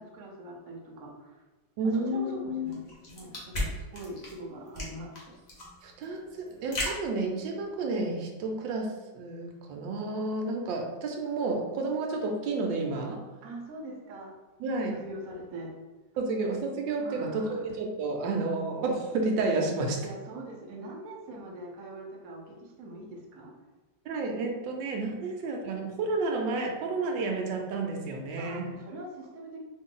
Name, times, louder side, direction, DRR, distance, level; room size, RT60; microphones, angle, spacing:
voice 1, 0.0-1.3 1.8-5.4 13.4-14.4 14.8-15.8 17.0-17.6 20.0-23.5 28.4-29.6, right 1 dB, 60° right, 0 dB, 1.0 m, -43 dB
voice 2, 1.8-2.7 5.8-13.2 14.6-15.0 16.2-20.0 24.1-28.7, right 3 dB, 90° right, 2 dB, 1.3 m, -31 dB
sound 1, 2.7-7.9, left 1 dB, 40° left, 0.6 m, -36 dB
3.0 x 2.6 x 3.7 m, 1.2 s
omnidirectional pair, 2.0 m